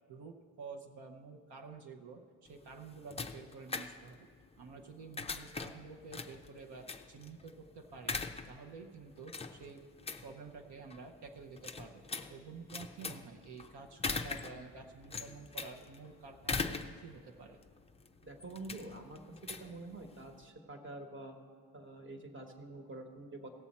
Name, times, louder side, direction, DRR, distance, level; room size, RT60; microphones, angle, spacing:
voice 1, 0.1-4.3 4.6-8.2 8.5-9.8 10.2-12.0 12.3-17.6, right 4 dB, 65° right, 3 dB, 0.9 m, -50 dB
sound 1, 2.5-20.4, left 4 dB, 15° left, 0.4 m, -43 dB
voice 2, 18.2-21.3 21.7-23.5, right 2 dB, 30° right, 4 dB, 1.2 m, -47 dB
17.5 x 7.1 x 4.2 m, 2.3 s
wide cardioid pair, 140°, 42 cm